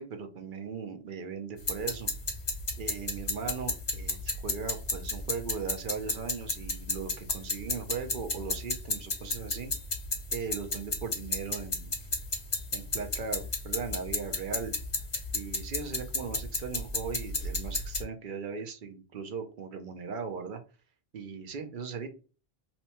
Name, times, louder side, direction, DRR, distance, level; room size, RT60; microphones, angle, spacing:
voice 1, 0.0-2.1 2.8-9.7 10.3-11.9 12.7-14.7 15.3-20.6 21.1-22.1, right 5 dB, 60° right, 6 dB, 0.7 m, -38 dB
sound 1, 1.6-18.0, left 3 dB, 35° left, 0.7 m, -33 dB
2.8 x 2.2 x 4.2 m, 0.34 s
omnidirectional pair, 1.0 m